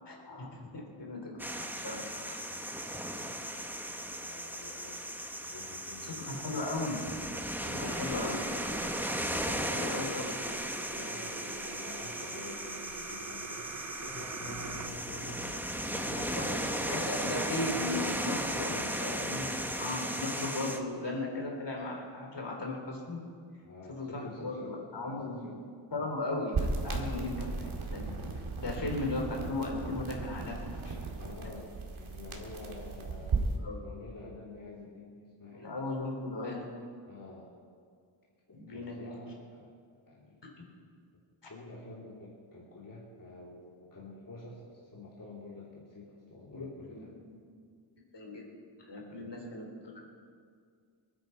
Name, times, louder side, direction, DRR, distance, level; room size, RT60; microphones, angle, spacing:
voice 1, 0.0-2.4 6.0-7.0 7.6-8.4 9.4-10.3 16.1-23.2 23.9-25.5 25.9-28.1 28.6-31.0 33.6-33.8 35.5-36.7 38.5-39.2 46.5-47.4 48.1-48.4 48.8-50.1, left 2 dB, 60° left, 0 dB, 3.6 m, -37 dB
sound 1, 1.4-20.8, equal, 5° right, 1.1 m, -36 dB
voice 2, 2.4-5.1 5.4-6.7 7.6-7.7 10.9-16.6 18.6-19.8 23.6-25.6 25.9-26.1 28.7-29.2 31.2-35.7 37.1-37.5 38.7-39.7 40.0-40.4 41.5-47.1 49.1-49.3, left 2 dB, 40° left, -5 dB, 2.9 m, -48 dB
sound 2, 7.9-14.9, right 6 dB, 40° right, 0.7 m, -45 dB
sound 3, 26.5-33.6, right 3 dB, 85° right, 2.1 m, -36 dB
27.0 x 9.8 x 4.6 m, 2.1 s
wide cardioid pair, 85°, 48 cm